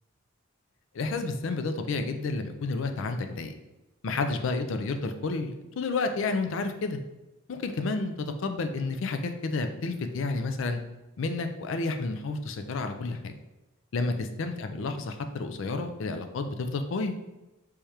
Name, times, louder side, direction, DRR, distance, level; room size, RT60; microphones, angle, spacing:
voice 1, 0.9-3.5 4.0-7.0 7.5-10.8 11.2-13.3 13.9-17.1, left 3 dB, 65° left, 7 dB, 0.4 m, -30 dB
3.5 x 3.2 x 2.8 m, 1.0 s
head